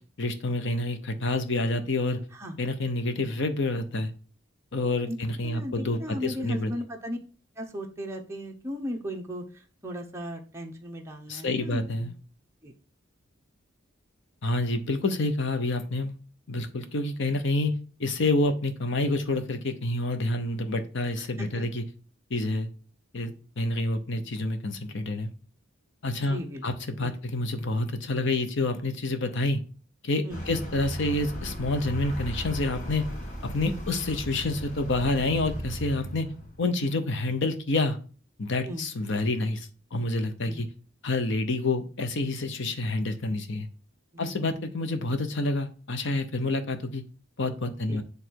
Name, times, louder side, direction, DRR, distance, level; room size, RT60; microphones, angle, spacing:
voice 1, 0.2-2.2 2.6-4.1 4.7-6.7 11.3-12.1 14.4-16.2 16.5-17.7 18.0-21.8 22.3-22.7 23.1-25.3 26.0-29.6 30.0-33.0 33.4-36.3 36.6-38.0 38.4-40.7 41.0-43.7 44.2-47.0 47.4-48.0, left 2 dB, 65° left, 8 dB, 0.9 m, -28 dB
voice 2, 5.4-7.2 7.6-12.1 12.6-12.7 21.4-21.7 26.3-26.6 27.0-27.1 30.3-30.4 38.7-38.9 40.5-40.7 44.1-44.5 47.9-48.0, equal, 15° right, 0 dB, 0.9 m, -36 dB
Vehicle, 30.3-36.7, right 1 dB, 40° left, 1.9 m, -36 dB
8.9 x 3.4 x 4.7 m, 0.38 s
head